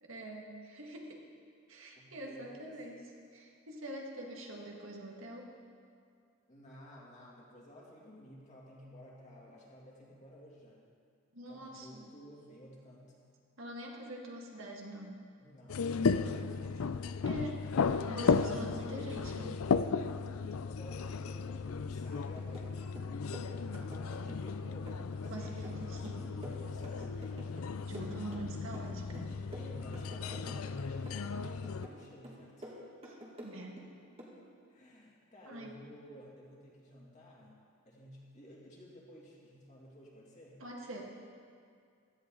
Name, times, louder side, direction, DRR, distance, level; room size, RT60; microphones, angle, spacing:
voice 1, 0.0-1.2 1.7-3.1 3.3-5.5 11.3-12.1 13.6-15.2 17.2-17.6 18.1-19.6 25.3-26.2 27.9-29.3 33.0-33.2 33.4-33.8 35.5-35.7 40.6-41.0, right 1 dB, 65° right, -1 dB, 1.9 m, -44 dB
voice 2, 1.9-2.8 6.5-10.9 11.5-13.3 15.4-16.8 20.7-27.3 29.5-32.8 34.7-37.6 37.9-40.6, equal, 35° left, -4 dB, 2.6 m, -54 dB
sound 1, 15.7-31.9, left 5 dB, 80° left, 0.4 m, -35 dB
sound 2, 22.2-22.7 23.0-24.6 24.9-27.7 27.9-28.9 29.1-30.8 31.1-32.0 32.2-33.9 34.2-34.4, equal, 30° right, 2.2 m, -49 dB
16.5 x 13.5 x 3.9 m, 2.3 s
head